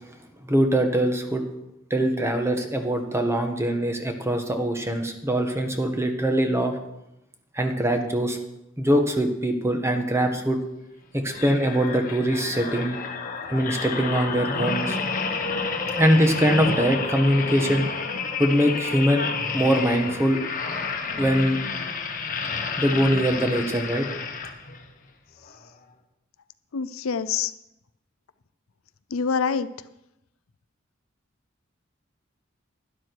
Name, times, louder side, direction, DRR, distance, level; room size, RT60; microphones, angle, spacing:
voice 1, 0.4-1.4 1.9-6.8 7.5-8.4 8.8-10.6 11.1-13.0 13.5-15.0 15.9-17.9 18.4-19.3 19.5-20.4 21.2-21.6 22.8-24.1, equal, 15° right, 5 dB, 1.3 m, -22 dB
sound 1, 11.3-24.9 25.4-25.6, left 4 dB, 40° left, 1.2 m, -30 dB
voice 2, 26.7-27.5 29.1-29.7, left 6 dB, 80° left, 14 dB, 0.5 m, -25 dB
12.0 x 11.0 x 4.7 m, 0.88 s
head